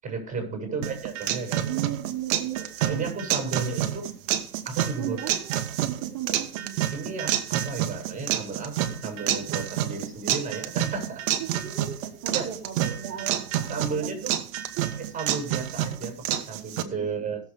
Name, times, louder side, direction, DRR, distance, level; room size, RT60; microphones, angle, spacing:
voice 1, 0.0-1.7 2.8-4.1 4.7-5.2 6.9-11.2 12.3-12.5 13.7-14.3 15.1-17.4, right 4 dB, 15° right, 4 dB, 7.0 m, -33 dB
sound 1, 0.8-16.8, right 12 dB, 55° right, 1.4 m, -29 dB
voice 2, 1.6-3.1 3.8-4.4 5.0-6.9 11.4-14.3 14.8-14.9 17.0-17.1, right 10 dB, 35° right, 0 dB, 2.5 m, -37 dB
19.5 x 7.3 x 3.5 m, 0.43 s
hypercardioid pair, 115°, 46 cm